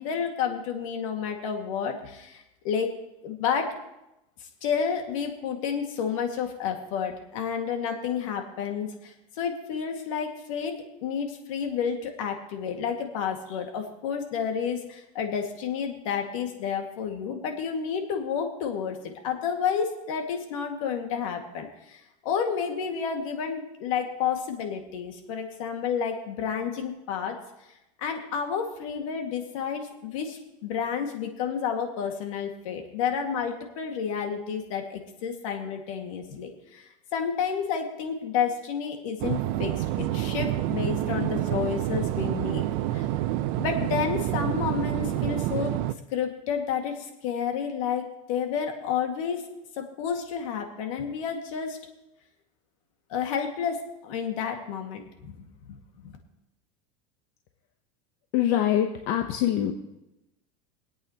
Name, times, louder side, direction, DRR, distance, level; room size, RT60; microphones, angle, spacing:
voice 1, 0.0-2.9 3.2-3.7 4.6-27.4 28.0-42.6 42.9-43.1 43.6-45.7 46.1-49.4 49.8-51.8 53.1-55.8 56.0-56.1, left 7 dB, 80° left, 3 dB, 2.0 m, -30 dB
sound 1, 39.2-45.9, right 14 dB, 60° right, 0.6 m, -28 dB
voice 2, 58.3-59.8, left 11 dB, 60° left, 5 dB, 0.9 m, -24 dB
25.5 x 8.6 x 3.0 m, 0.91 s
supercardioid pair, 145°, 17 cm